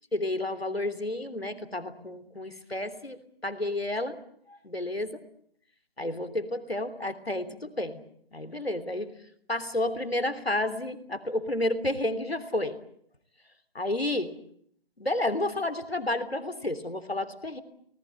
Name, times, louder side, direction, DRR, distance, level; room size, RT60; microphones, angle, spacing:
voice 1, 0.1-4.1 4.6-5.2 6.0-8.0 8.3-9.1 9.5-12.7 13.7-14.3 15.0-17.6, left 1 dB, 85° left, 9 dB, 3.2 m, -31 dB
25.5 x 19.5 x 9.3 m, 0.69 s
figure-of-eight pair, 160°, 30 cm